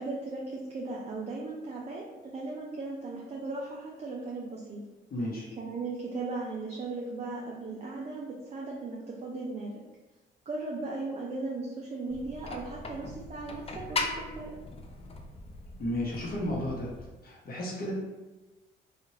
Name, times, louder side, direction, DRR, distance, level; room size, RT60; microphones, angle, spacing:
voice 1, 0.0-4.8 5.6-9.7 10.5-14.5, right 3 dB, 35° right, -3 dB, 0.5 m, -37 dB
voice 2, 5.1-5.5 15.8-16.9 17.2-17.9, left 1 dB, 50° left, -4 dB, 0.9 m, -33 dB
sound 1, 12.1-17.1, left 2 dB, 30° left, 0.4 m, -39 dB
3.1 x 2.4 x 2.8 m, 1.1 s
cardioid pair, 90°, 20 cm